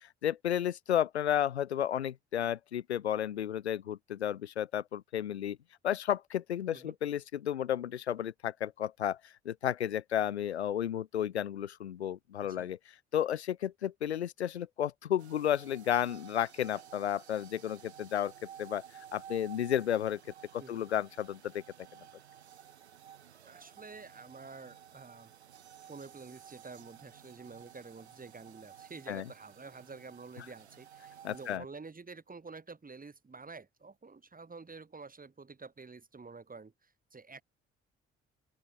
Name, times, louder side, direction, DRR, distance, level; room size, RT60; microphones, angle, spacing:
voice 1, 0.0-5.6 5.8-12.8 13.1-18.8 19.1-20.2 20.5-21.6 29.1-29.2 31.2-31.6, left 10 dB, 80° left, 1.1 m, -32 dB
voice 2, 12.4-12.7 20.6-20.9 23.4-25.3 25.8-37.4, right 4 dB, 25° right, 7.6 m, -49 dB
sound 1, 15.2-31.6, right 9 dB, 80° right, 1.9 m, -54 dB
open air
figure-of-eight pair, 45°, 32 cm